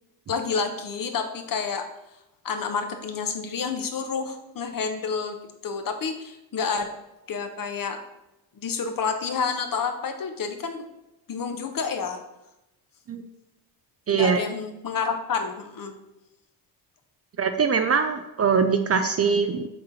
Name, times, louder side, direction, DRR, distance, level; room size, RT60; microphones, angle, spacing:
voice 1, 0.3-1.8 2.4-6.9 7.3-8.0 8.6-10.9 11.3-12.2 14.1-16.0, left 5 dB, 40° left, 6 dB, 1.0 m, -29 dB
voice 2, 14.1-14.4 17.4-19.7, right 6 dB, 30° right, 7 dB, 0.5 m, -22 dB
6.9 x 3.8 x 4.2 m, 0.91 s
hypercardioid pair, 50°, 50 cm